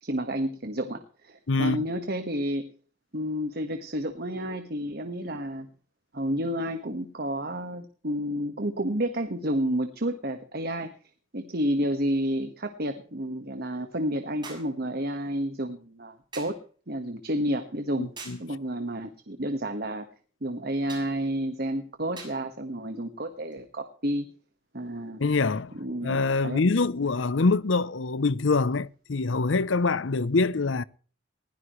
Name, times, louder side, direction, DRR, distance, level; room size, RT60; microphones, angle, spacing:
voice 1, 0.0-2.7 3.1-5.7 6.1-10.9 11.3-16.6 16.9-18.1 18.4-20.1 20.4-24.3 24.7-25.2 25.7-26.6, equal, 50° right, 1.5 m, -30 dB
voice 2, 1.5-1.8 18.0-18.4 25.2-25.7 26.0-30.8, left 3 dB, 70° left, 0.7 m, -25 dB
sound 1, 14.4-14.8 16.3-16.6 18.2-18.5 20.9-21.1 22.2-22.4 23.5-23.6, right 4 dB, 25° right, 7.1 m, -43 dB
21.0 x 16.0 x 3.2 m
head